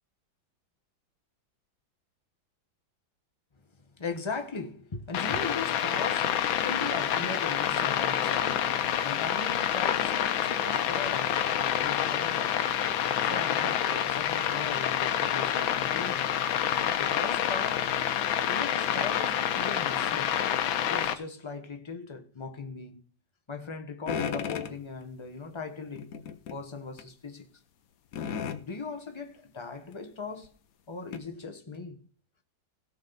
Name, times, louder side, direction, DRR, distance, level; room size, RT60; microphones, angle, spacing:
voice 1, 4.0-8.7 9.0-12.5 13.2-16.4 16.9-17.9 18.5-20.4 20.8-23.0 23.5-26.1 26.5-27.5 28.6-30.5 30.9-32.0, left 4 dB, 25° left, 0.6 m, -39 dB
sound 1, 5.1-21.1, left 10 dB, 85° left, 1.6 m, -28 dB
sound 2, 24.1-24.8 26.0-26.6 27.0-27.1 28.1-28.6 29.9-30.0 30.4-30.5 31.1-31.2, left 7 dB, 60° left, 1.0 m, -34 dB
16.5 x 6.4 x 4.0 m
omnidirectional pair, 2.2 m